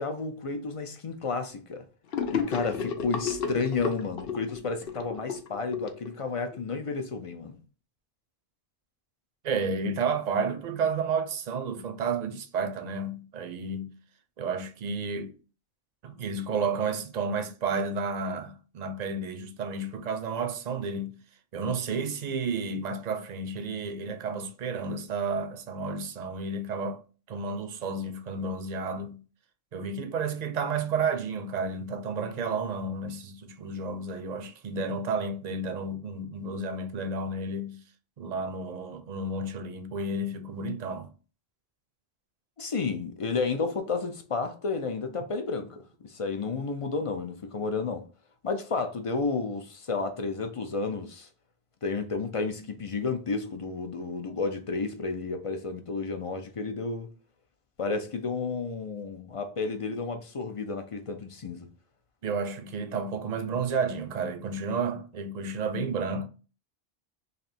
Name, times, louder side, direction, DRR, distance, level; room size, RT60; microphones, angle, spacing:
voice 1, 0.0-1.9 2.3-7.6 42.6-48.0 48.4-51.3 51.8-57.1 57.8-61.7, left 4 dB, 45° left, 0.5 m, -31 dB
Gurgling / Sink (filling or washing), 2.1-6.6, left 6 dB, 70° left, 0.8 m, -32 dB
voice 2, 9.4-13.9 14.4-15.3 16.0-21.2 21.5-27.0 27.3-29.2 29.7-37.8 38.2-41.1 62.2-66.3, right 4 dB, 50° right, 0.6 m, -31 dB
3.3 x 2.6 x 4.1 m
omnidirectional pair, 1.0 m